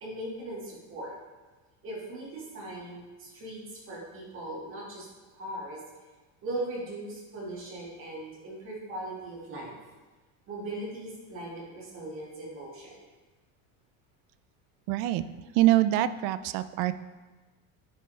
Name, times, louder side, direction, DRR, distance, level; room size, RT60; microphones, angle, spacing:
voice 1, 0.0-1.1 1.8-5.8 6.4-9.7 10.5-13.0, right 1 dB, 35° right, -3 dB, 2.0 m, -39 dB
voice 2, 14.9-15.2 15.6-17.0, right 14 dB, 70° right, 14 dB, 0.5 m, -24 dB
9.6 x 5.4 x 3.3 m, 1.3 s
cardioid pair, 165°, 35 cm